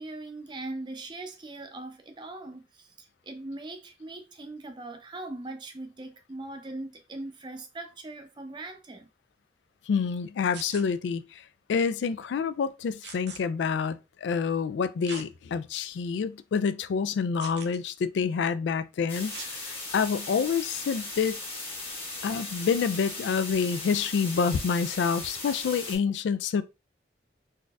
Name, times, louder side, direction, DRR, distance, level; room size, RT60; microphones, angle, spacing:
voice 1, 0.0-2.9 3.2-9.1, right 2 dB, 25° right, 0.5 m, -40 dB
voice 2, 9.9-11.2 11.7-19.4 19.9-21.4 22.2-26.6, left 6 dB, 85° left, 0.3 m, -27 dB
sound 1, 10.5-10.8 13.0-13.4 15.0-15.3 15.9-16.0 17.4-17.8 19.3-19.5 21.1-21.3, right 5 dB, 75° right, 0.6 m, -42 dB
sound 2, 19.1-26.0, left 2 dB, 30° left, 1.3 m, -38 dB
3.9 x 2.6 x 2.3 m
head